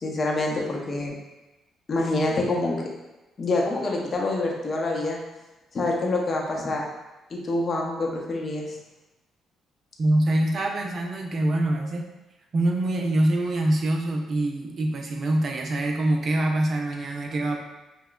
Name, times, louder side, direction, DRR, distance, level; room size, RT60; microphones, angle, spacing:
voice 1, 0.0-1.1 1.9-2.7 3.4-5.2 5.7-6.8 7.3-8.8, left 2 dB, 45° left, -1 dB, 0.7 m, -26 dB
voice 2, 10.0-12.0 12.5-17.6, right 1 dB, 50° right, 2 dB, 0.6 m, -24 dB
5.8 x 2.2 x 2.3 m, 1.0 s
cardioid pair, 90°, 0 cm